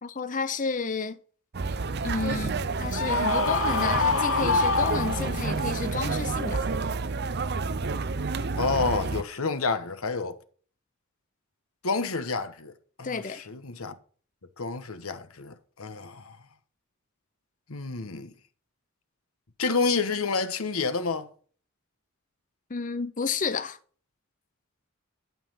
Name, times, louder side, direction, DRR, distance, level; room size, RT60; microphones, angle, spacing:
voice 1, 0.0-1.2 2.0-6.7 13.0-13.5 22.7-23.8, left 4 dB, 40° left, 0.7 m, -31 dB
sound 1, 1.5-9.2, right 4 dB, 50° right, 0.6 m, -29 dB
Screaming, 2.9-5.6, left 4 dB, 70° left, 1.3 m, -26 dB
voice 2, 8.5-10.4 11.8-13.9 14.6-16.4 17.7-18.3 19.6-21.3, left 4 dB, 90° left, 1.3 m, -29 dB
11.5 x 5.7 x 5.7 m
head